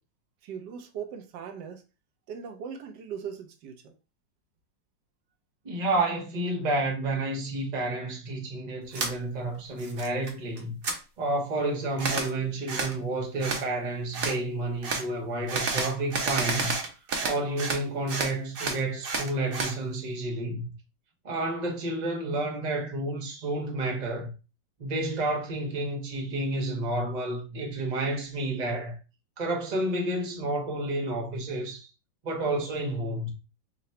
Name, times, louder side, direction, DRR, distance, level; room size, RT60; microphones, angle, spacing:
voice 1, 0.4-1.8 2.3-3.9, right 7 dB, 70° right, 1.3 m, -39 dB
voice 2, 5.6-10.8 11.2-16.7 17.2-20.7 21.2-24.3 24.8-29.0 29.4-31.9 32.2-33.3, right 2 dB, 40° right, 0.6 m, -30 dB
sound 1, 8.9-9.1 9.5-10.3 10.6-11.0 12.0-12.3 12.7-12.9 13.4-13.6 14.1-14.4 14.8-15.0 15.5-17.8 18.1-19.7, right 4 dB, 90° right, 0.5 m, -30 dB
3.8 x 2.2 x 4.1 m
omnidirectional pair, 2.0 m